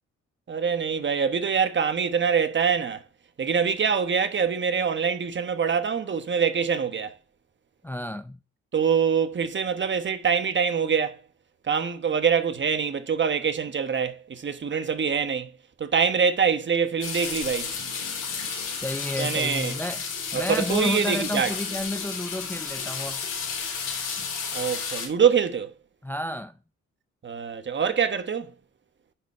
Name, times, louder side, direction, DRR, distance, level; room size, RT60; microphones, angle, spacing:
voice 1, 0.5-3.0 3.4-7.1 8.7-11.2 11.6-15.5 15.8-17.7 19.2-19.7 20.3-21.5 24.5-25.7 27.2-28.5, right 6 dB, 40° right, 1.2 m, -24 dB
voice 2, 7.8-8.4 18.8-20.1 20.3-23.2 26.0-26.5, left 1 dB, 5° left, 0.6 m, -31 dB
sound 1, 17.0-25.1, left 6 dB, 80° left, 3.9 m, -32 dB
10.0 x 4.1 x 4.2 m
cardioid pair, 90°, 30 cm